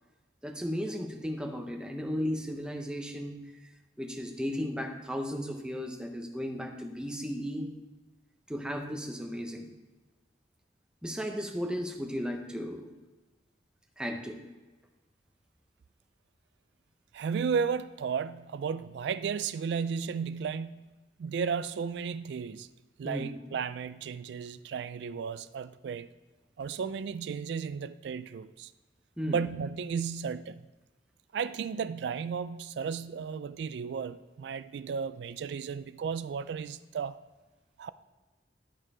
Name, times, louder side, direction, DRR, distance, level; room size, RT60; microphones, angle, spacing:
voice 1, 0.4-3.4 4.0-7.7 8.5-9.7 11.0-12.9 14.0-14.4 23.0-23.3 29.2-29.4, equal, 5° right, 3 dB, 0.8 m, -35 dB
voice 2, 17.1-20.9 21.2-22.7 23.0-26.1 26.6-28.7 29.3-30.6 31.3-37.2 37.8-37.9, right 6 dB, 65° right, 14 dB, 0.3 m, -34 dB
11.0 x 4.6 x 4.9 m, 1.2 s
head